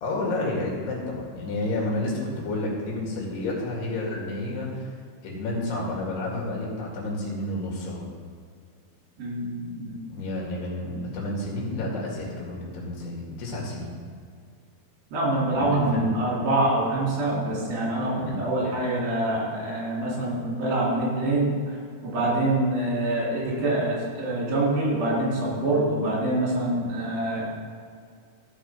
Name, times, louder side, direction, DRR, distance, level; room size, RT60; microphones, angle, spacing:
voice 1, 0.0-4.8 5.2-8.0 10.1-13.9 15.5-16.1 18.2-18.4, left 2 dB, 85° left, -3 dB, 4.2 m, -30 dB
voice 2, 9.2-10.0 15.1-21.5 22.0-27.4, right 1 dB, 70° right, -5 dB, 4.8 m, -25 dB
15.0 x 5.4 x 5.1 m, 2.1 s
omnidirectional pair, 4.6 m